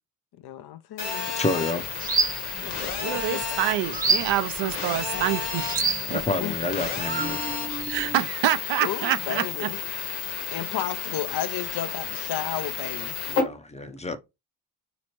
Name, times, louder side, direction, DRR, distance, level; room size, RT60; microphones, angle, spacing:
voice 1, 0.4-1.7 2.6-3.4 5.1-5.2 6.4-6.5 8.8-9.8 10.5-13.2, left 11 dB, 55° left, 0.7 m, -33 dB
Telephone, 1.0-13.4, left 6 dB, 90° left, 1.2 m, -32 dB
voice 2, 1.4-1.8 6.1-7.4 13.3-14.2, left 2 dB, 15° left, 0.7 m, -29 dB
sound 1, 1.8-8.2, right 4 dB, 20° right, 0.9 m, -30 dB
voice 3, 3.0-6.2 7.9-9.7, right 12 dB, 65° right, 0.7 m, -27 dB
4.1 x 3.0 x 3.0 m
hypercardioid pair, 50°, 47 cm